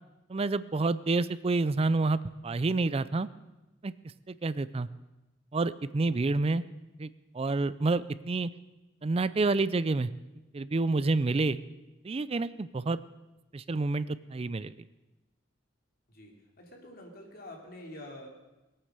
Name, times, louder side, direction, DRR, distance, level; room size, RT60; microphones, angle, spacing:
voice 1, 0.3-3.3 3.8-3.9 4.3-4.9 5.5-6.6 7.0-8.5 9.0-10.1 10.5-11.6 12.0-13.0 13.5-14.7, right 3 dB, 30° right, 16 dB, 0.4 m, -28 dB
voice 2, 16.1-18.3, left 1 dB, 50° left, 0 dB, 3.0 m, -47 dB
20.0 x 8.8 x 6.7 m, 1.0 s
head